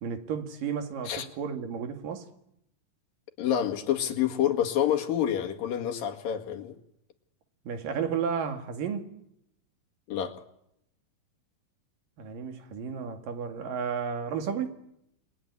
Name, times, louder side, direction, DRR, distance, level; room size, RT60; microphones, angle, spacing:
voice 1, 0.0-2.3 7.7-9.2 12.2-14.8, right 7 dB, 80° right, 3.8 m, -33 dB
voice 2, 3.4-6.8 10.1-10.4, left 10 dB, 90° left, 3.7 m, -28 dB
29.0 x 21.0 x 9.8 m
omnidirectional pair, 3.9 m